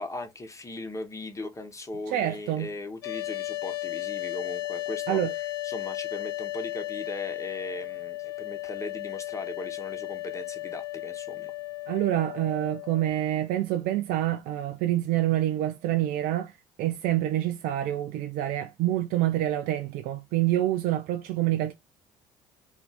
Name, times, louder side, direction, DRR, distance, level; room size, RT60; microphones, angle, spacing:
voice 1, 0.0-11.5, left 2 dB, 20° left, 1.0 m, -38 dB
voice 2, 2.1-2.7 5.1-5.3 11.9-16.5 16.8-21.7, right 13 dB, 70° right, 0.4 m, -27 dB
sound 1, 3.0-13.1, left 17 dB, 85° left, 0.7 m, -35 dB
2.6 x 2.3 x 4.1 m
supercardioid pair, 70°, 16 cm